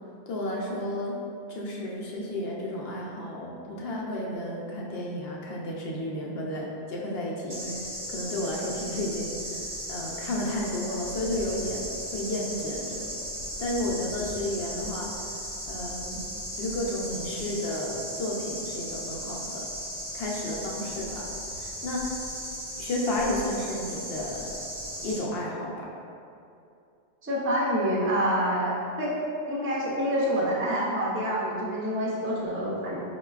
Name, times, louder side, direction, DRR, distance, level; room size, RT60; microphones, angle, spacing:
voice 1, 0.3-1.1 1.5-3.5 3.8-7.8 8.1-9.6 9.9-11.8 12.1-13.1 13.6-15.1 15.7-16.2 16.6-19.7 20.1-21.2 21.6-22.2 22.8-24.5 25.0-25.9, left 1 dB, 75° left, -3 dB, 0.8 m, -32 dB
sound 1, 7.5-25.2, equal, 35° right, 0.8 m, -36 dB
voice 2, 27.2-28.7 29.0-29.1 29.5-33.0, equal, 20° right, -6 dB, 0.4 m, -27 dB
5.2 x 2.2 x 2.3 m, 2.6 s
omnidirectional pair, 1.0 m